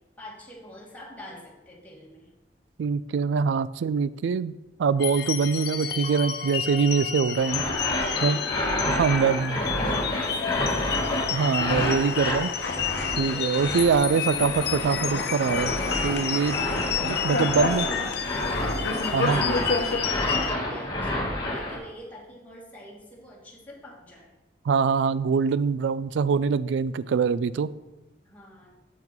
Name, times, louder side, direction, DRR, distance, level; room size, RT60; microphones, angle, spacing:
voice 1, 0.2-2.3 8.0-8.8 9.3-11.2 16.8-17.1 17.4-18.2 18.9-24.3 28.2-28.7, equal, 10° left, -5 dB, 1.9 m, -44 dB
voice 2, 2.8-7.6 8.2-8.4 8.8-9.6 11.3-12.5 13.2-15.7 16.0-16.6 17.0-17.9 19.1-19.4 24.6-27.7, right 5 dB, 80° right, 17 dB, 0.3 m, -24 dB
sound 1, 5.0-20.5, left 9 dB, 60° left, 0.5 m, -31 dB
sound 2, 7.4-21.8, left 1 dB, 25° left, 1.5 m, -29 dB
sound 3, 11.7-20.0, left 3 dB, 75° left, 0.9 m, -32 dB
7.1 x 5.9 x 4.5 m, 1.0 s
head